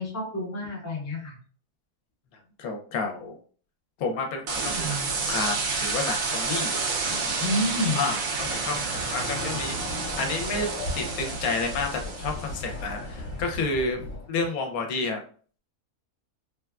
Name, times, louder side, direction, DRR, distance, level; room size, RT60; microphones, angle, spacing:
voice 1, 0.0-1.3 7.0-8.0, left 1 dB, 20° left, -3 dB, 0.4 m, -29 dB
voice 2, 2.6-3.3 4.0-6.7 8.0-9.7 10.2-10.7 10.9-14.0 14.3-15.2, left 3 dB, 75° left, 3 dB, 1.0 m, -30 dB
sound 1, 4.5-12.7, right 4 dB, 70° right, 1.0 m, -30 dB
Chatter / Car passing by / Motorcycle, 8.4-14.3, left 1 dB, 40° left, 1.1 m, -36 dB
3.3 x 2.2 x 2.3 m, 0.44 s
omnidirectional pair, 1.6 m